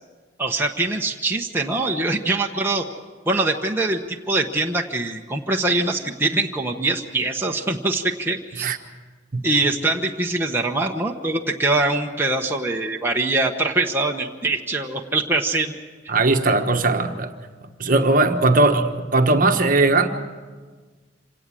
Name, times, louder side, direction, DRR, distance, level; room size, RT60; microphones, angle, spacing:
voice 1, 0.4-2.9 3.3-8.7 9.4-15.7 16.0-16.1, right 2 dB, 10° right, 0 dB, 1.0 m, -23 dB
voice 2, 16.1-17.3 17.8-20.1, right 2 dB, 45° right, 6 dB, 1.3 m, -19 dB
26.0 x 18.0 x 7.6 m, 1.4 s
head